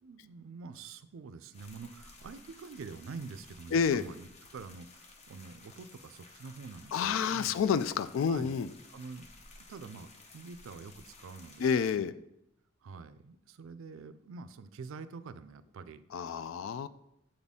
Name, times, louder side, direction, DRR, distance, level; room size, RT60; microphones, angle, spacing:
voice 1, 0.0-7.5 8.3-8.6 8.9-9.3 9.6-12.1 12.8-16.0, right 4 dB, 85° right, 13 dB, 0.4 m, -46 dB
sound 1, 1.5-11.9, left 3 dB, 35° left, 0.8 m, -55 dB
voice 2, 3.7-4.0 6.9-8.7 11.6-12.1 16.1-16.9, left 6 dB, 80° left, 15 dB, 0.3 m, -29 dB
7.8 x 4.1 x 3.6 m, 0.79 s
head